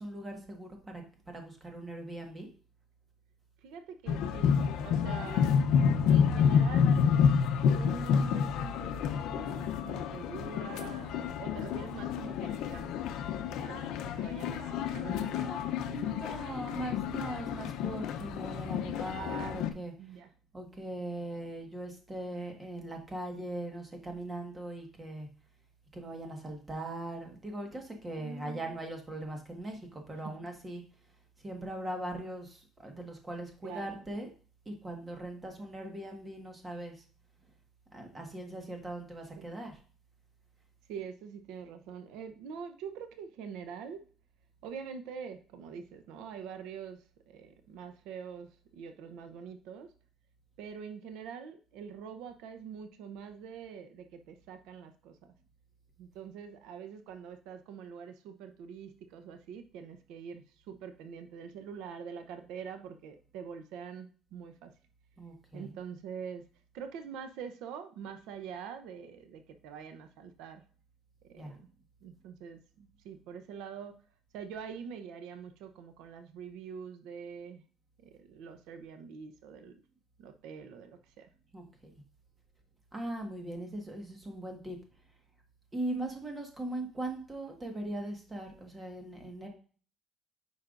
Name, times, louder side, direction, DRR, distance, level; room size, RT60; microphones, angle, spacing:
voice 1, 0.0-2.5 15.1-15.7 15.9-19.9 20.5-25.3 25.9-30.8 31.4-34.3 34.6-36.9 37.9-39.8 65.2-65.8 71.3-71.6 81.5-81.6 82.9-84.8 85.7-89.5, right 1 dB, 15° right, 3 dB, 1.5 m, -40 dB
voice 2, 3.6-4.6 4.8-5.6 6.1-7.0 7.5-12.9 13.6-15.6 16.7-16.8 20.0-20.3 28.2-28.7 33.6-34.0 39.4-39.5 40.9-44.0 44.6-49.9 50.6-55.3 56.0-64.7 65.5-66.5 66.7-70.6 71.2-71.7 72.0-74.0 74.3-77.6 78.0-79.8 80.2-81.3, right 7 dB, 85° right, 8 dB, 0.8 m, -45 dB
sound 1, 4.1-19.7, left 7 dB, 70° left, 0.7 m, -29 dB
9.1 x 5.5 x 2.5 m, 0.40 s
cardioid pair, 165°, 0 cm